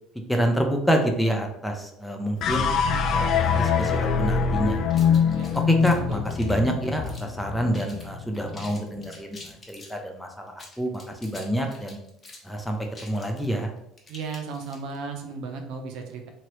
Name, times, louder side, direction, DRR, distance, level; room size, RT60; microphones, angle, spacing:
voice 1, 0.3-2.7 3.0-4.8 5.7-12.0 12.4-13.7, equal, 5° left, 3 dB, 0.7 m, -27 dB
sound 1, 2.4-8.8, left 6 dB, 55° left, 0.4 m, -24 dB
sound 2, 4.9-7.4 7.7-8.1 8.3-10.0 10.5-15.0, left 2 dB, 25° left, 0.9 m, -47 dB
voice 2, 5.9-6.2 14.1-16.3, right 4 dB, 65° right, 3 dB, 0.6 m, -35 dB
2.8 x 2.8 x 3.0 m, 0.79 s
supercardioid pair, 80°, 0 cm